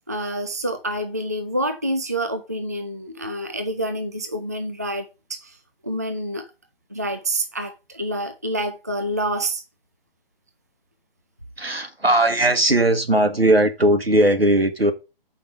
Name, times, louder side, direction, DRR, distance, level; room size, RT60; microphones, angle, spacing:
voice 1, 0.1-5.6 5.8-6.5 6.9-9.6, right 1 dB, 20° right, 0.3 m, -27 dB
voice 2, 11.6-14.9, right 1 dB, 85° right, 1.6 m, -18 dB
7.3 x 5.4 x 5.0 m
figure-of-eight pair, 140°, 29 cm